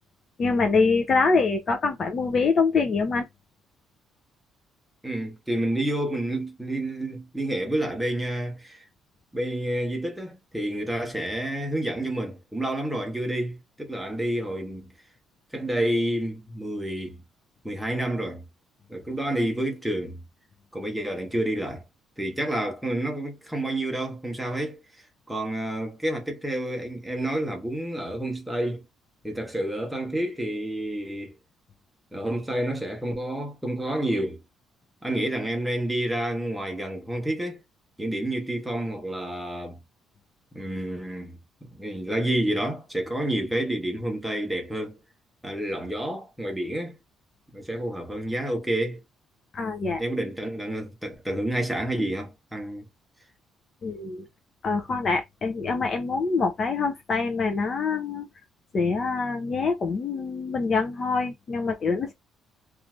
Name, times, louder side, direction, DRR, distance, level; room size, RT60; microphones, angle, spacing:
voice 1, 0.4-3.2 49.5-50.0 53.8-54.3 54.6-58.3 58.7-62.1, left 4 dB, 35° left, 0.4 m, -25 dB
voice 2, 5.0-8.8 9.3-14.9 15.5-17.2 17.6-18.4 18.9-20.2 20.7-21.8 22.2-24.8 25.3-28.8 29.2-31.3 32.1-34.4 35.0-37.6 38.0-39.8 40.5-45.0 45.4-46.9 47.5-49.0 50.0-52.9, right 1 dB, 5° right, 0.8 m, -29 dB
2.6 x 2.4 x 3.0 m
cardioid pair, 145°, 0 cm